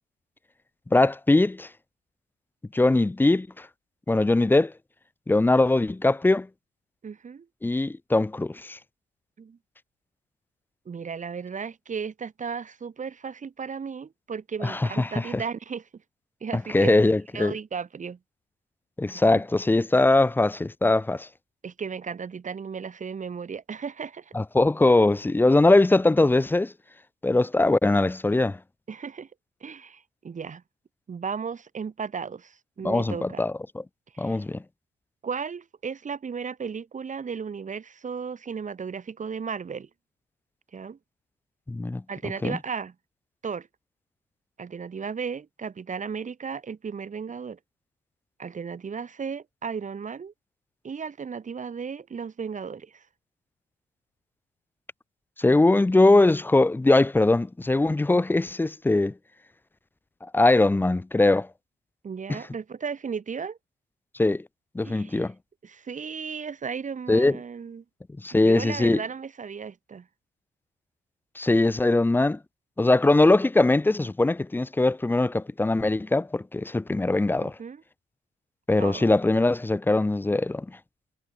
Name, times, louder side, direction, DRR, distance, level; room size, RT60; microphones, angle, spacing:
voice 1, 0.9-1.7 2.7-3.7 4.1-4.7 5.3-6.5 7.6-8.8 14.6-15.4 16.5-17.5 19.0-21.3 24.3-26.7 27.2-28.6 32.8-33.8 34.2-34.6 41.7-42.0 42.4-42.6 55.4-59.1 60.3-61.5 62.3-62.4 64.2-64.4 64.7-65.3 67.1-67.4 68.2-69.0 71.4-72.4 72.8-77.6 78.7-80.7, left 2 dB, 10° left, 0.5 m, -21 dB
voice 2, 7.0-7.5 9.4-9.6 10.9-15.8 16.4-16.9 17.3-18.2 19.1-19.2 21.6-24.3 28.9-29.3 29.6-30.6 31.1-33.4 34.1-34.4 35.2-39.9 40.7-41.0 42.1-42.9 43.4-43.7 44.6-47.6 48.4-50.3 50.8-53.0 62.0-63.6 64.8-65.3 65.6-67.8 68.3-70.1 77.4-77.8 78.8-79.1, right 6 dB, 40° right, 2.5 m, -35 dB
cardioid pair, 90°, 20 cm